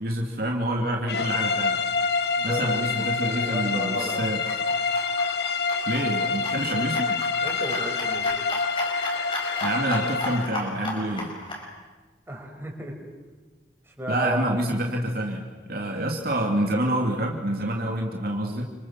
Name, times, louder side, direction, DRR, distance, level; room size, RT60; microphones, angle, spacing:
voice 1, 0.0-1.8 2.4-4.4 5.9-7.2 9.6-11.3 14.1-18.6, right 1 dB, 50° right, 1 dB, 2.8 m, -27 dB
sound 1, 1.1-10.5, left 5 dB, 60° left, 1.2 m, -27 dB
Horse trot, 1.2-11.7, left 2 dB, 25° left, 5.5 m, -36 dB
voice 2, 2.4-4.4 6.7-6.9 7.4-8.3 12.3-12.9 13.9-14.4, right 1 dB, 10° right, 0 dB, 5.8 m, -35 dB
30.0 x 26.5 x 7.5 m, 1.3 s
head